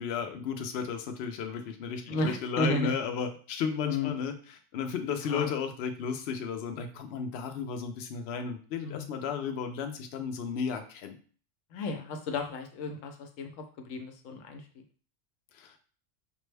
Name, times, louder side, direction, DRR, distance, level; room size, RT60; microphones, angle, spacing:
voice 1, 0.0-11.2 15.5-15.8, left 6 dB, 65° left, 5 dB, 0.8 m, -34 dB
voice 2, 2.1-2.9 3.8-4.1 5.2-5.5 8.8-9.1 11.7-14.8, left 2 dB, 85° left, 5 dB, 1.0 m, -33 dB
5.3 x 2.1 x 3.3 m, 0.41 s
omnidirectional pair, 1.3 m